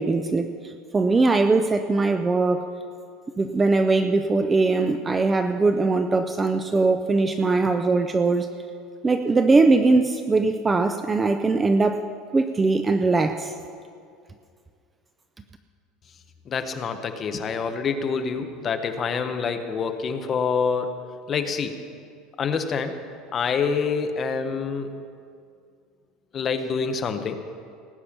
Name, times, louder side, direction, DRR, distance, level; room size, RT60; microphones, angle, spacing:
voice 1, 0.0-2.7 3.4-8.5 9.0-12.1 12.3-13.6, right 3 dB, 10° right, 9 dB, 0.3 m, -21 dB
voice 2, 16.5-21.0 21.3-21.8 22.4-23.0 23.3-24.9 26.3-27.4, left 5 dB, 25° left, 7 dB, 0.7 m, -26 dB
18.5 x 8.5 x 5.8 m, 2.3 s
cardioid pair, 175°, 0 cm